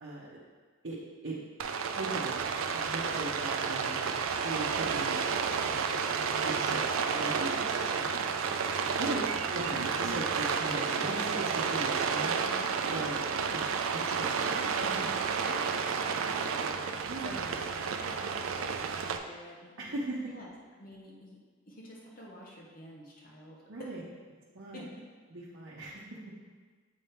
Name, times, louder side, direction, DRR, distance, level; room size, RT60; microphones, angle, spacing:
voice 1, 0.0-0.4 0.8-1.0 1.2-1.4 1.9-2.6 2.9-4.1 4.4-5.3 5.7-6.0 6.4-8.1 8.7-9.2 9.5-13.2 13.5-13.6 13.9-14.9 17.1-17.4 19.8-20.2 23.7-24.0 24.5-24.8 25.3-26.0, right 2 dB, 70° right, -6 dB, 0.8 m, -39 dB
Rain, 1.6-19.2, right 5 dB, 85° right, 0.4 m, -31 dB
voice 2, 12.2-12.5 15.4-19.9 20.2-21.4 21.6-23.9 24.7-24.8, left 1 dB, 45° left, -3 dB, 0.9 m, -48 dB
7.4 x 3.4 x 4.4 m, 1.5 s
head